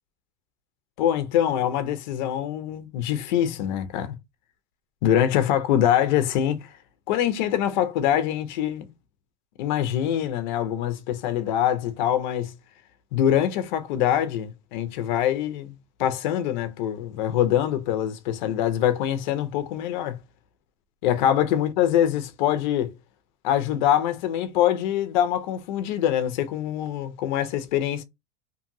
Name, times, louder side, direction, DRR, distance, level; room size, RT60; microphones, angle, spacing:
voice 1, 1.0-4.1 5.0-6.8 7.1-8.9 9.6-12.6 13.1-15.7 16.0-20.2 21.0-22.9 23.4-28.0, left 10 dB, 40° left, 0.4 m, -24 dB
2.8 x 2.6 x 2.5 m
supercardioid pair, 180°, 35 cm